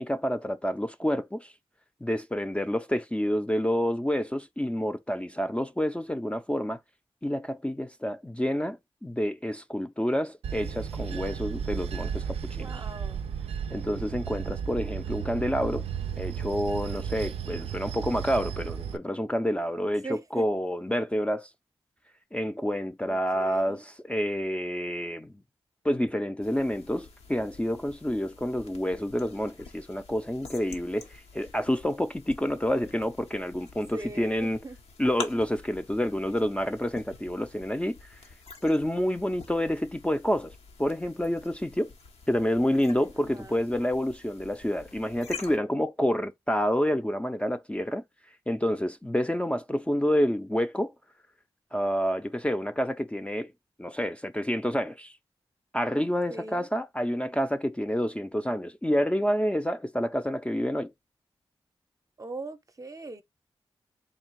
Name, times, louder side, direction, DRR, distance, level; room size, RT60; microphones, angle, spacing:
voice 1, 0.0-1.5 2.0-6.8 7.2-12.7 13.7-15.9 16.2-21.5 22.3-25.3 25.8-34.6 35.0-38.0 38.6-41.9 42.3-48.0 48.5-50.9 51.7-53.5 53.8-55.2 55.7-60.9, equal, 10° left, 0.4 m, -28 dB
Bell / Train, 10.4-19.0, right 7 dB, 90° right, 0.4 m, -34 dB
voice 2, 12.6-13.2 20.0-20.5 23.0-23.8 33.9-34.8 43.2-43.7 56.3-56.7 62.2-63.2, right 3 dB, 35° right, 0.6 m, -41 dB
sound 1, 26.4-45.6, left 4 dB, 85° left, 0.8 m, -47 dB
3.6 x 2.3 x 4.5 m
cardioid pair, 40°, 10 cm